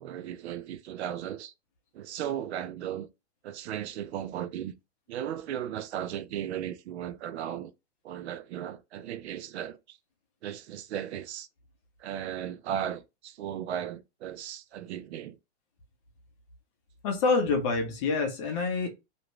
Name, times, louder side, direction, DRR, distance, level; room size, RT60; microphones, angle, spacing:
voice 1, 0.0-1.5 1.9-3.1 3.4-4.7 5.1-7.7 8.0-10.0 10.4-11.5 12.0-15.4, right 10 dB, 70° right, 0.5 m, -36 dB
voice 2, 17.0-18.9, left 4 dB, 30° left, 0.6 m, -26 dB
2.6 x 2.1 x 3.0 m
supercardioid pair, 160°, 34 cm